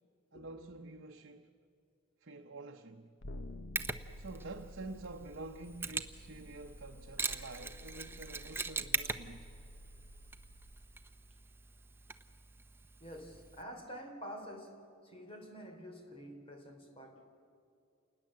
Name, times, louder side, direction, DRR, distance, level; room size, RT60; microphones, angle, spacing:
voice 1, 0.3-1.5 2.2-3.2 4.2-9.5, right 2 dB, 60° right, 0.9 m, -48 dB
sound 1, 3.2-10.7, left 1 dB, 65° left, 0.9 m, -51 dB
Mechanisms, 3.8-13.6, right 4 dB, 10° right, 0.8 m, -42 dB
voice 2, 13.0-17.3, equal, 30° left, 3.1 m, -48 dB
28.5 x 20.0 x 7.6 m
head